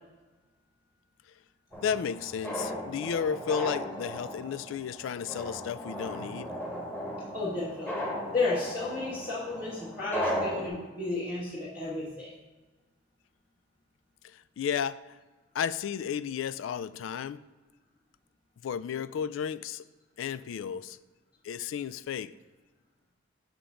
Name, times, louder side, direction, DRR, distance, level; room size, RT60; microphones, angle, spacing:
sound 1, 1.7-10.7, equal, 10° left, 1.3 m, -36 dB
voice 1, 1.8-6.6 14.2-15.2 15.5-17.4 18.6-19.8 20.2-21.0 21.4-22.3, left 7 dB, 75° left, 0.3 m, -33 dB
voice 2, 7.3-7.9 8.3-12.3, left 3 dB, 50° left, 1.7 m, -32 dB
7.0 x 3.7 x 5.8 m
head